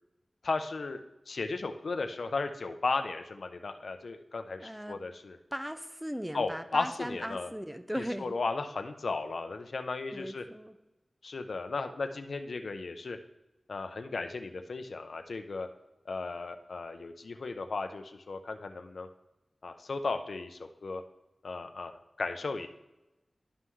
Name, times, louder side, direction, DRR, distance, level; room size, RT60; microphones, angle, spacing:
voice 1, 0.4-5.4 6.3-7.5 8.0-10.4 11.2-13.2 13.7-15.7 16.1-19.1 19.6-21.0 21.4-21.9 22.2-22.7, left 3 dB, 80° left, 7 dB, 0.5 m, -35 dB
voice 2, 4.6-5.0 5.5-8.4 10.1-10.7, equal, 5° right, 9 dB, 0.6 m, -38 dB
11.0 x 5.6 x 3.1 m, 0.97 s
wide cardioid pair, 70°, 0 cm